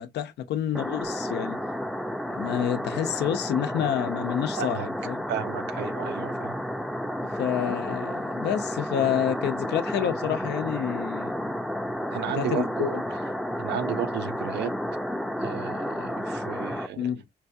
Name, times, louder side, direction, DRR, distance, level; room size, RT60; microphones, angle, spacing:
voice 1, 0.0-1.6 2.3-5.2 7.4-11.4 12.3-13.0 17.0-17.2, left 10 dB, 80° left, 0.7 m, -28 dB
sound 1, 0.7-16.9, equal, ahead, 0.5 m, -31 dB
voice 2, 4.6-4.9 5.3-6.6 12.1-13.2 13.6-14.7 15.4-17.0, right 9 dB, 85° right, 0.7 m, -33 dB
4.6 x 2.3 x 2.6 m
cardioid pair, 85°, 17 cm